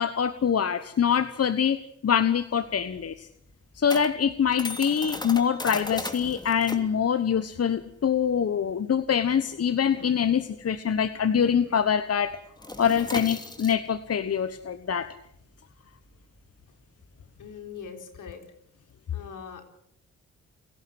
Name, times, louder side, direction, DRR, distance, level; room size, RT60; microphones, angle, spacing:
voice 1, 0.0-1.8 2.0-3.3 3.8-12.4 12.8-15.1, left 7 dB, 50° left, 12 dB, 1.2 m, -24 dB
sound 1, 2.4-11.3 11.6-11.9 12.1-17.9, left 1 dB, 15° left, 3.1 m, -39 dB
voice 2, 17.4-18.5 19.1-19.6, left 6 dB, 80° left, 4 dB, 4.2 m, -41 dB
29.5 x 12.0 x 7.8 m, 0.75 s
supercardioid pair, 55°, 31 cm